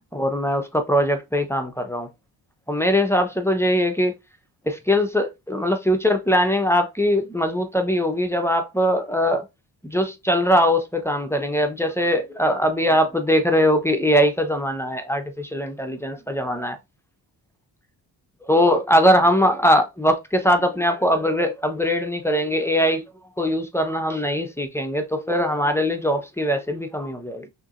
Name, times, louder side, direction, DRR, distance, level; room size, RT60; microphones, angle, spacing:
voice 1, 0.1-2.1 2.7-4.1 4.7-9.4 9.8-16.8 18.4-23.0 23.4-27.5, equal, 5° left, 1.0 m, -21 dB
5.8 x 3.0 x 2.6 m
cardioid pair, 55°, 44 cm